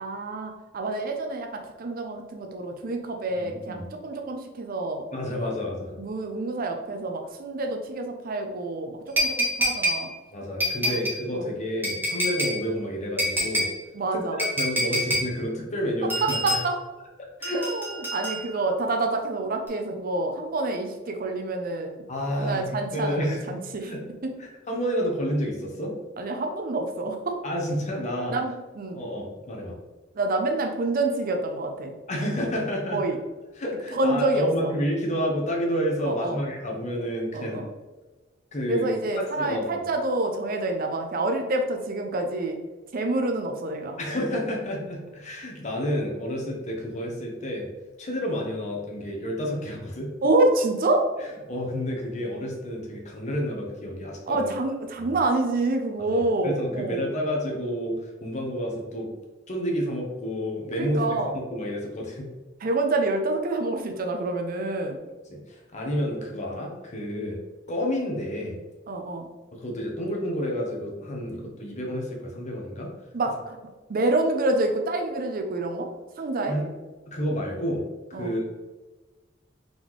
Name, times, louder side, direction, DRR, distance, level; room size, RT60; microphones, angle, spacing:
voice 1, 0.0-5.1 5.4-5.5 6.0-10.1 10.8-11.0 11.3-11.4 13.9-14.4 16.2-16.8 17.6-22.0 22.4-23.9 26.2-27.4 28.3-29.0 30.2-31.9 32.9-33.2 33.9-34.7 36.1-36.4 37.3-37.6 38.7-42.6 42.9-44.0 50.2-51.0 54.3-57.0 60.8-61.3 62.6-65.0 68.9-69.3 73.1-73.6 73.9-75.9 76.2-76.6 78.1-78.3, right 2 dB, 50° right, 4 dB, 0.5 m, -27 dB
voice 2, 3.4-3.8 5.1-6.0 10.3-13.7 14.1-14.2 14.6-16.6 17.4-17.6 22.1-23.5 23.8-24.0 24.4-25.9 27.4-28.4 28.9-29.8 32.1-33.0 33.6-37.6 38.5-38.9 39.4-39.8 44.0-47.7 48.0-50.1 51.5-54.5 55.0-55.2 56.0-58.0 58.2-59.1 59.5-62.3 65.3-67.4 67.7-68.6 69.5-72.9 76.5-76.7 77.1-77.8 78.1-78.5, equal, 40° left, 0 dB, 0.9 m, -30 dB
sound 1, 9.2-10.0 10.6-11.2 11.8-12.6 13.2-13.7 14.4-15.3 16.1-16.6 17.4-18.6 19.7-19.8, equal, 10° right, 1.2 m, -26 dB
3.9 x 3.7 x 3.0 m, 1.2 s
head